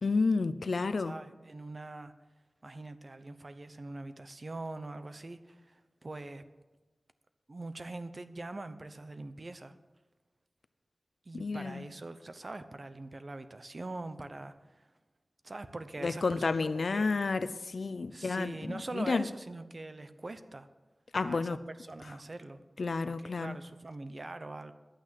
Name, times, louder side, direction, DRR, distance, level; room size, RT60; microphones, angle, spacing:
voice 1, 0.0-1.1 11.3-11.9 16.0-19.3 21.1-21.6 22.8-23.6, left 4 dB, 75° left, 0.5 m, -31 dB
voice 2, 1.0-2.1 2.6-6.4 7.5-9.7 11.3-14.9 15.4-16.5 16.9-17.1 18.1-20.7 21.2-22.6 23.0-24.7, right 2 dB, 45° right, 0.8 m, -43 dB
11.0 x 9.0 x 7.6 m
wide cardioid pair, 85°, 0 cm